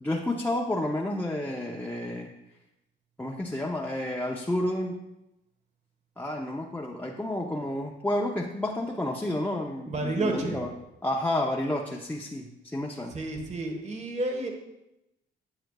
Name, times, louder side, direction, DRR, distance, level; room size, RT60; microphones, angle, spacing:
voice 1, 0.0-2.4 3.2-5.0 6.2-10.7 11.0-13.1, left 1 dB, 10° left, -2 dB, 0.7 m, -30 dB
voice 2, 9.9-10.6 13.1-14.5, right 2 dB, 35° right, 3 dB, 1.4 m, -30 dB
10.0 x 7.5 x 2.4 m, 0.91 s
cardioid pair, 90°, 20 cm